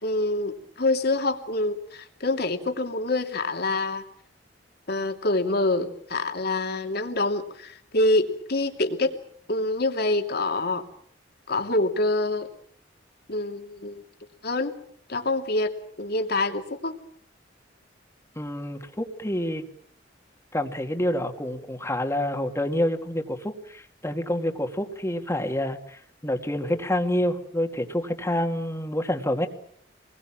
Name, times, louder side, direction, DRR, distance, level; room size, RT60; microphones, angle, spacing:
voice 1, 0.0-4.0 4.9-9.1 9.5-10.9 11.5-12.5 13.3-14.0 14.4-14.8 15.1-17.0, left 2 dB, 60° left, 5 dB, 2.9 m, -26 dB
voice 2, 18.4-19.6 20.5-29.5, left 1 dB, 15° left, 6 dB, 2.3 m, -28 dB
27.5 x 21.5 x 7.5 m, 0.65 s
head